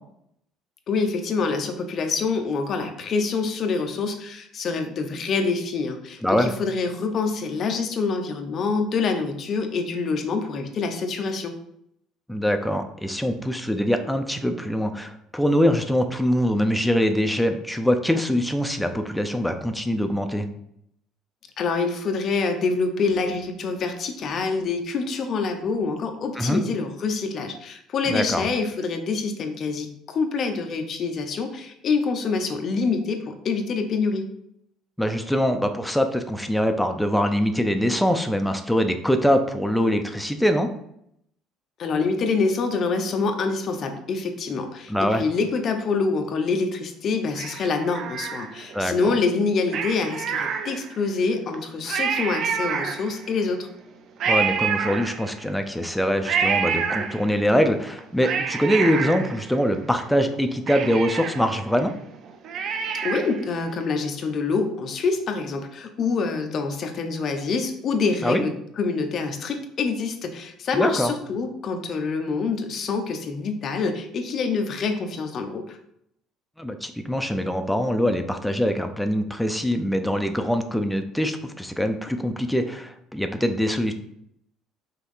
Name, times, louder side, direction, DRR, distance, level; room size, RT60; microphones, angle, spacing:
voice 1, 0.9-11.5 21.6-34.3 41.8-53.7 63.0-75.8, left 4 dB, 40° left, 5 dB, 0.9 m, -26 dB
voice 2, 6.2-6.5 12.3-20.5 26.4-26.6 28.1-28.5 35.0-40.7 44.9-45.2 48.7-49.1 54.3-61.9 68.2-68.4 70.7-71.1 76.6-83.9, equal, ahead, 6 dB, 0.6 m, -23 dB
Cat, 47.4-48.8 49.7-51.1 51.5-51.6 51.8-53.4 54.2-55.6 56.2-57.5 58.0-60.0 60.3-60.4 60.7-63.5 63.8-63.9, right 6 dB, 50° right, 0.7 m, -28 dB
5.8 x 3.6 x 5.5 m, 0.74 s
cardioid pair, 145°, 0 cm